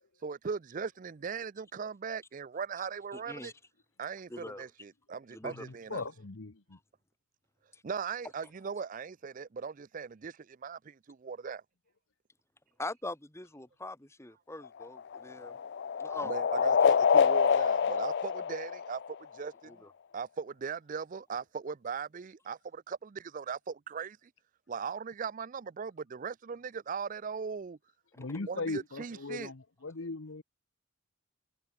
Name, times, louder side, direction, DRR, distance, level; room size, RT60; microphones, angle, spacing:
voice 1, 0.2-3.5 4.0-6.0 7.8-11.6 16.2-19.0 19.3-19.8 20.1-24.2 24.7-27.8 28.5-29.5, right 6 dB, 40° right, 0.4 m, -39 dB
voice 2, 3.1-3.5 4.3-4.7 5.3-5.6 7.7-7.8 12.8-15.6 16.0-16.3 16.6-16.9 19.7-19.9 28.1-28.3, left 2 dB, 15° left, 1.7 m, -43 dB
voice 3, 5.4-6.8 28.1-30.4, left 3 dB, 70° left, 1.1 m, -39 dB
sound 1, 14.6-19.4, left 6 dB, 55° left, 0.4 m, -27 dB
head